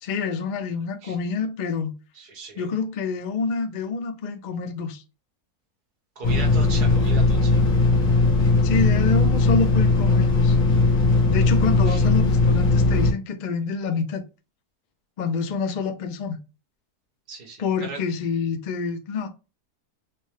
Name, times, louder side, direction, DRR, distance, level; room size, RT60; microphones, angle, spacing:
voice 1, 0.0-1.9 2.6-5.0 8.6-10.6 11.3-14.2 15.2-16.4 17.6-19.3, left 5 dB, 85° left, 0.4 m, -27 dB
voice 2, 2.2-2.7 6.2-7.6 11.9-12.0 17.3-18.0, right 3 dB, 80° right, 1.9 m, -37 dB
sound 1, 6.2-13.1, left 3 dB, 60° left, 1.5 m, -19 dB
5.9 x 2.1 x 3.2 m
omnidirectional pair, 1.7 m